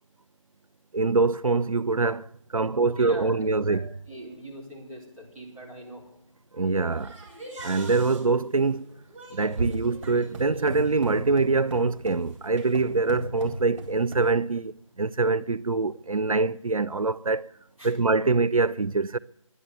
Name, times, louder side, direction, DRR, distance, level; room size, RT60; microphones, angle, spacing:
voice 1, 0.9-2.3 2.5-3.9 6.5-7.1 7.6-8.9 9.3-14.7 15.0-17.5 17.8-19.2, right 3 dB, 90° right, 0.5 m, -24 dB
voice 2, 3.0-3.3 3.7-6.1 17.8-17.9, right 1 dB, 5° left, 3.5 m, -43 dB
sound 1, 6.9-14.3, right 2 dB, 25° right, 3.7 m, -37 dB
11.0 x 11.0 x 8.2 m
figure-of-eight pair, 160°, 17 cm